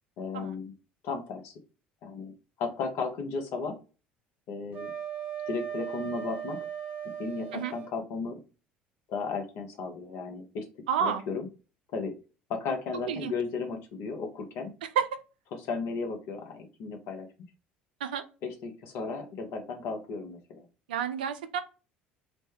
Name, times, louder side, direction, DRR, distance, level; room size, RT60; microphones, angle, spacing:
voice 1, 0.2-0.7 1.0-1.5 2.0-2.3 2.6-3.8 4.5-4.9 5.5-6.6 7.2-8.4 9.1-10.7 11.0-11.5 11.9-12.1 12.5-14.7 15.6-17.3 18.4-20.6, left 4 dB, 60° left, 4 dB, 0.8 m, -34 dB
Wind instrument woodwind instrument, 4.7-7.9, right 9 dB, 45° right, 1.1 m, -37 dB
voice 2, 10.9-11.2 13.1-13.3 15.0-15.1 18.0-18.2 20.9-21.6, right 8 dB, 75° right, 10 dB, 0.3 m, -29 dB
3.1 x 2.1 x 3.2 m, 0.34 s
hypercardioid pair, 60°, 5 cm